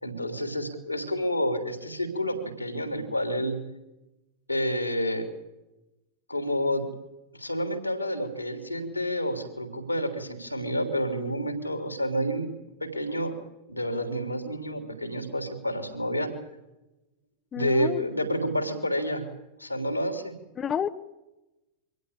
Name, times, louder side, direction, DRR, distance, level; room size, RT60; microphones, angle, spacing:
voice 1, 0.0-3.6 4.5-5.3 6.3-6.8 7.3-12.5 12.8-13.3 13.7-16.3 17.6-19.3 19.6-20.3, equal, 85° left, 6 dB, 3.4 m, -29 dB
voice 2, 17.5-18.0 20.6-20.9, left 8 dB, 25° left, 10 dB, 0.9 m, -29 dB
24.5 x 17.0 x 8.6 m, 1.0 s
figure-of-eight pair, 90°, 0 cm